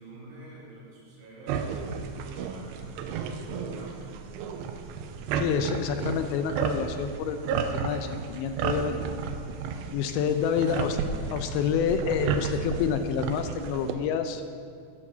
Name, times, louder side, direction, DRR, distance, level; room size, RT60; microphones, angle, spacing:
voice 1, 0.0-4.1 10.3-10.7, right 1 dB, 65° right, -7 dB, 5.0 m, -46 dB
sound 1, 1.5-13.9, right 6 dB, 80° right, 2.7 m, -32 dB
voice 2, 5.3-9.0 9.9-11.0 11.3-14.4, left 7 dB, 85° left, 8 dB, 2.8 m, -28 dB
15.5 x 6.3 x 6.7 m, 2.3 s
omnidirectional pair, 5.3 m